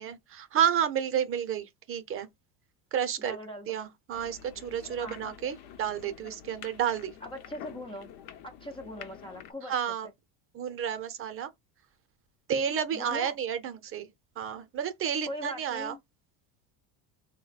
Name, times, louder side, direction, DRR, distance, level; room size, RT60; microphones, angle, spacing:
voice 1, 0.0-2.3 2.9-3.4 3.7-7.1 9.7-10.1 10.5-11.5 12.5-14.1 14.4-15.9, right 8 dB, 35° right, 0.6 m, -31 dB
voice 2, 3.2-3.8 5.0-5.2 7.2-8.1 8.4-9.7 12.9-13.4 15.3-16.0, equal, 15° left, 0.4 m, -40 dB
sound 1, 4.1-9.5, left 9 dB, 70° left, 0.8 m, -48 dB
3.9 x 2.2 x 4.0 m
cardioid pair, 145°, 40 cm